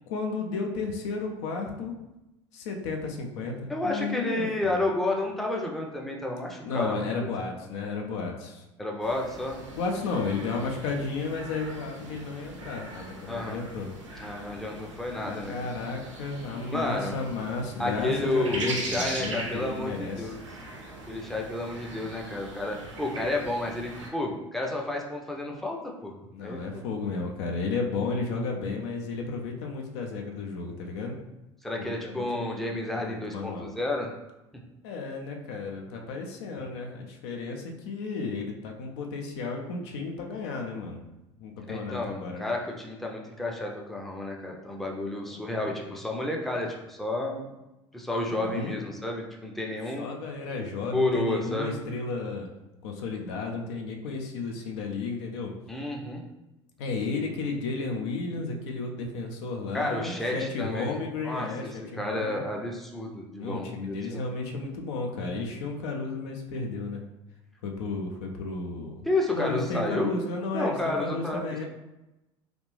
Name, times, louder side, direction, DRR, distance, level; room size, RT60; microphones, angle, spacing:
voice 1, 0.1-1.9 2.5-4.8 6.6-8.7 9.7-13.9 15.2-20.4 26.3-31.1 31.8-33.7 34.8-41.0 41.4-42.5 45.2-45.7 48.2-48.8 50.0-52.5 52.8-55.5 56.8-62.4 63.4-67.0 67.6-69.1 69.3-71.6, left 4 dB, 60° left, 2 dB, 0.6 m, -33 dB
voice 2, 3.7-6.9 8.8-9.6 13.3-13.6 14.2-15.5 16.7-17.2 17.8-20.4 21.1-26.1 26.4-26.8 31.6-34.1 41.7-47.5 47.9-50.1 50.9-51.8 55.7-56.2 59.7-61.0 61.2-64.2 69.1-70.1 70.5-71.6, left 2 dB, ahead, 0 dB, 0.5 m, -31 dB
sound 1, 9.0-24.1, right 2 dB, 75° right, 0.8 m, -40 dB
3.3 x 2.4 x 3.3 m, 0.98 s
figure-of-eight pair, 65°, 16 cm